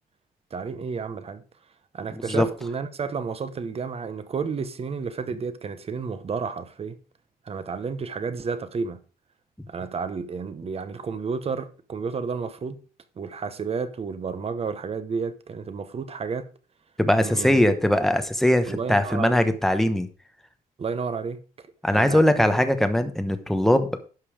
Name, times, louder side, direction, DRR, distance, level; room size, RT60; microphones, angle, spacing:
voice 1, 0.5-1.4 1.9-7.0 7.4-9.0 9.7-12.8 13.2-16.5 17.2-17.6 18.7-19.5 20.8-21.4 21.9-22.2, right 5 dB, 40° right, 1.0 m, -31 dB
voice 2, 2.1-2.5 17.0-20.1 21.8-23.9, left 1 dB, ahead, 1.0 m, -21 dB
11.5 x 5.4 x 5.0 m
cardioid pair, 140°, 16 cm